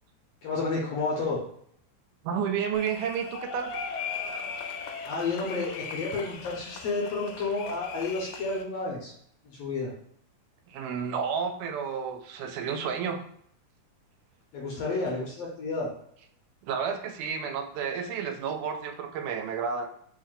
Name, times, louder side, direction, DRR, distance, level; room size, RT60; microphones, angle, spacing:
voice 1, 0.4-1.4 5.0-9.1 9.4-9.9 14.5-15.9, left 3 dB, 70° left, -3 dB, 1.7 m, -31 dB
voice 2, 2.2-3.7 10.7-13.2 16.6-19.9, right 6 dB, 90° right, 6 dB, 2.0 m, -31 dB
sound 1, 2.7-8.6, left 5 dB, 90° left, 2.0 m, -38 dB
4.6 x 2.6 x 3.7 m, 0.68 s
omnidirectional pair, 3.5 m